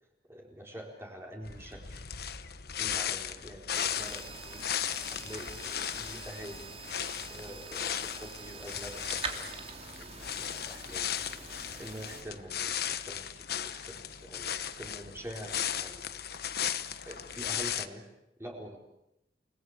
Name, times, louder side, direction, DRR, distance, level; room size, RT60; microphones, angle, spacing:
voice 1, 0.3-2.0 2.8-4.7 5.1-6.7 7.3-9.6 10.0-10.1 10.4-11.1 11.4-16.0 17.1-18.0 18.4-18.8, equal, 15° right, -1 dB, 4.2 m, -46 dB
sound 1, 1.4-17.9, left 9 dB, 60° left, 1.2 m, -36 dB
sound 2, 3.7-12.2, right 4 dB, 35° right, 3.3 m, -44 dB
30.0 x 20.0 x 8.0 m, 0.87 s
head